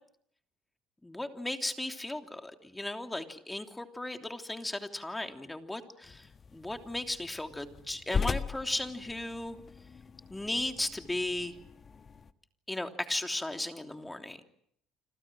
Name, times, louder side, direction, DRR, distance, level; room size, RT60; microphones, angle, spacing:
voice 1, 1.0-9.6 10.3-11.6 12.7-14.4, left 1 dB, 10° left, 5 dB, 3.1 m, -36 dB
sound 1, 6.0-12.3, left 5 dB, 35° left, 1.4 m, -39 dB
30.0 x 26.0 x 6.3 m, 0.69 s
supercardioid pair, 75°, 0 cm